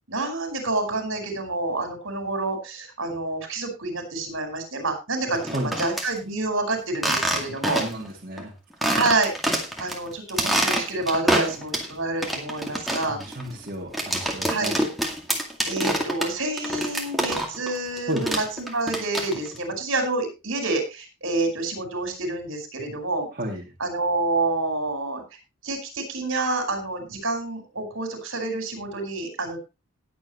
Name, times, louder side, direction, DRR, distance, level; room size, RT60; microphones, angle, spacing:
voice 1, 0.1-7.8 8.9-9.3 9.8-13.2 14.5-14.7 15.6-23.3 23.8-25.2 25.6-29.6, right 2 dB, 70° right, 4 dB, 5.0 m, -28 dB
voice 2, 5.3-5.7 7.4-7.5 7.8-8.5 12.7-14.8 18.1-18.2 23.3-23.7, right 1 dB, 40° right, -2 dB, 2.6 m, -33 dB
sound 1, 5.4-6.1 6.9-8.1 8.4-8.5 8.8-10.0 10.3-11.9 12.2-17.7 18.0-19.6, right 1 dB, ahead, 2.2 m, -26 dB
20.0 x 7.8 x 3.1 m, 0.27 s
head